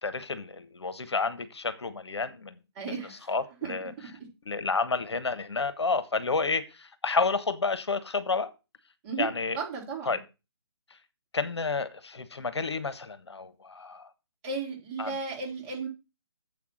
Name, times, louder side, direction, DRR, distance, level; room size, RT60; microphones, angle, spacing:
voice 1, 0.0-2.5 3.3-3.9 4.4-8.5 9.2-9.6 10.0-10.2 11.3-14.1 15.0-15.1, left 4 dB, 75° left, 12 dB, 1.3 m, -30 dB
voice 2, 2.8-3.3 3.6-3.7 9.0-10.2 14.4-15.9, right 5 dB, 25° right, -2 dB, 3.6 m, -35 dB
7.8 x 5.9 x 6.3 m, 0.28 s
figure-of-eight pair, 145°, 14 cm